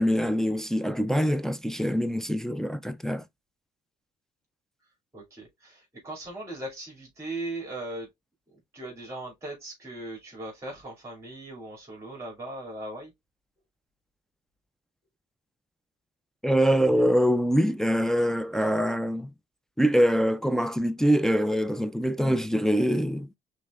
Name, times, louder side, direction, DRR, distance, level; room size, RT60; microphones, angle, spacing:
voice 1, 0.0-3.2 16.4-19.3 19.8-23.3, equal, 5° left, 0.3 m, -24 dB
voice 2, 5.1-8.1 8.7-13.1, right 2 dB, 15° right, 2.5 m, -38 dB
5.3 x 3.2 x 2.4 m
cardioid pair, 110°, 17 cm